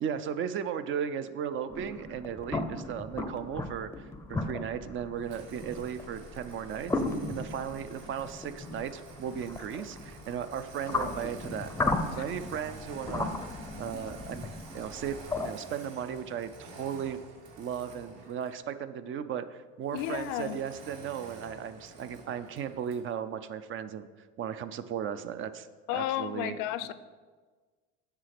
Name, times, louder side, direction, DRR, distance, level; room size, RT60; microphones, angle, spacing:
voice 1, 0.0-6.9 7.3-11.7 12.1-13.3 13.8-17.2 17.6-24.1 24.4-25.7 25.9-26.6, right 8 dB, 35° right, 12 dB, 0.5 m, -36 dB
sound 1, 1.7-15.5, left 2 dB, 5° left, 0.6 m, -36 dB
Engine starting, 5.2-18.6 19.9-23.1, right 2 dB, 70° right, 2.4 m, -49 dB
voice 2, 19.9-20.6 25.9-26.9, left 12 dB, 60° left, 14 dB, 0.6 m, -32 dB
8.0 x 5.7 x 5.8 m, 1.4 s
supercardioid pair, 115°, 34 cm